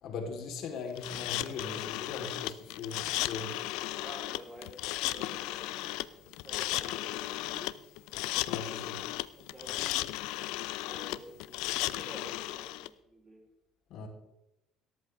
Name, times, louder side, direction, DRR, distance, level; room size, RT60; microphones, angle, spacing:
voice 1, 0.0-3.5 8.5-9.0 13.9-14.1, left 4 dB, 65° left, 2 dB, 3.7 m, -40 dB
sound 1, 1.0-12.9, left 17 dB, 80° left, 0.5 m, -35 dB
voice 2, 3.9-7.7 8.5-8.8 9.4-10.2 10.8-13.4, right 1 dB, 15° right, 0 dB, 4.1 m, -50 dB
17.0 x 13.5 x 3.5 m, 0.90 s
cardioid pair, 115°, 0 cm